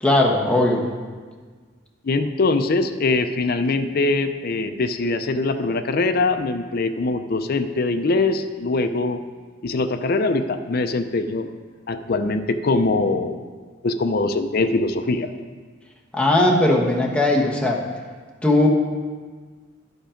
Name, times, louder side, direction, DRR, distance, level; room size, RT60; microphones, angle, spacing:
voice 1, 0.0-0.8 16.1-17.8 18.4-18.7, left 1 dB, 5° left, -2 dB, 1.1 m, -18 dB
voice 2, 2.0-9.2 9.6-11.5 11.9-13.4 13.8-15.3, left 3 dB, 50° left, 8 dB, 0.5 m, -22 dB
11.5 x 5.3 x 5.0 m, 1.5 s
head